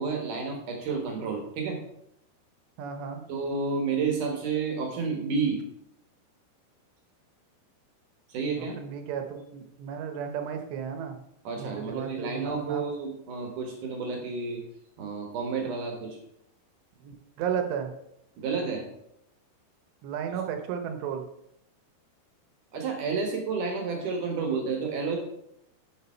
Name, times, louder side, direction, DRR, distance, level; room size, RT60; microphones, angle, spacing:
voice 1, 0.0-1.8 3.3-5.6 8.3-8.8 11.4-14.6 15.0-16.2 18.4-18.8 22.7-25.2, right 4 dB, 60° right, 2 dB, 2.5 m, -30 dB
voice 2, 2.8-3.2 8.6-11.2 11.6-12.9 17.0-17.9 20.0-21.2, right 7 dB, 80° right, 6 dB, 3.1 m, -34 dB
11.0 x 6.3 x 4.4 m, 0.77 s
omnidirectional pair, 5.0 m